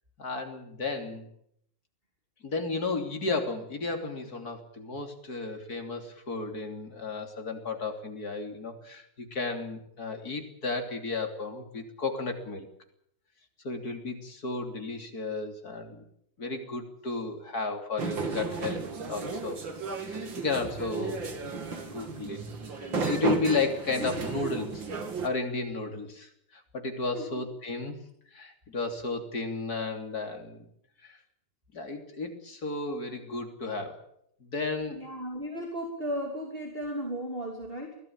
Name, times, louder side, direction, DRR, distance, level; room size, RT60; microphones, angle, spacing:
voice 1, 0.2-1.3 2.4-12.7 13.6-16.0 16.4-19.6 20.0-21.2 21.5-22.4 22.8-24.9 25.2-28.0 28.3-30.7 31.0-31.2 31.7-34.0 34.4-35.0, left 3 dB, 55° left, 5 dB, 3.6 m, -33 dB
sound 1, 18.0-25.3, right 4 dB, 90° right, 3.3 m, -34 dB
voice 2, 34.9-38.0, equal, 30° right, 2 dB, 3.4 m, -35 dB
23.5 x 17.0 x 8.8 m, 0.72 s
omnidirectional pair, 2.0 m